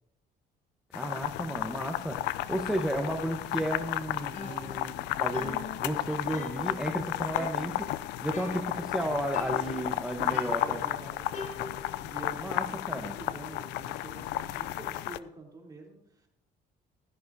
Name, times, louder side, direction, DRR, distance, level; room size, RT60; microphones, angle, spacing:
sound 1, 0.9-15.2, left 15 dB, 90° left, 0.5 m, -33 dB
voice 1, 0.9-7.9 8.2-10.8 12.4-13.2, right 1 dB, 5° right, 3 dB, 1.1 m, -33 dB
sound 2, 4.3-5.1 5.3-7.0 7.3-7.9 8.3-9.0 9.3-10.0 10.3-12.0, left 3 dB, 50° left, 3.6 m, -43 dB
voice 2, 9.6-16.3, right 3 dB, 20° right, -1 dB, 3.4 m, -47 dB
15.5 x 12.5 x 2.7 m, 0.84 s
cardioid pair, 110°, 17 cm